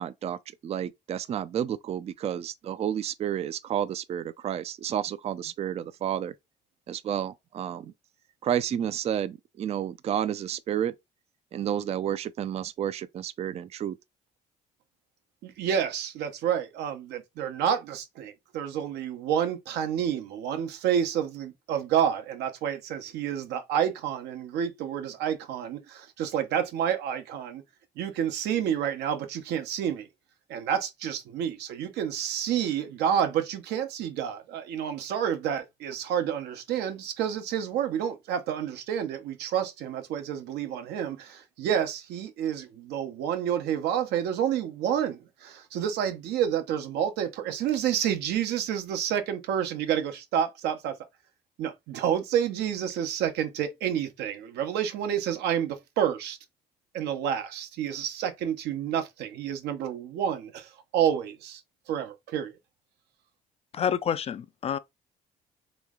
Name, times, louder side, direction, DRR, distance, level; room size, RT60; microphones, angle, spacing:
voice 1, 0.0-6.3 6.9-7.9 8.4-10.9 11.5-14.0, right 10 dB, 40° right, 0.4 m, -31 dB
voice 2, 15.4-27.6 28.0-30.1 30.5-51.0 51.6-56.4 56.9-61.6 61.9-62.5, right 9 dB, 80° right, 0.9 m, -29 dB
voice 3, 63.7-64.8, left 8 dB, 35° left, 0.4 m, -28 dB
3.1 x 3.1 x 3.6 m
cardioid pair, 110°, 17 cm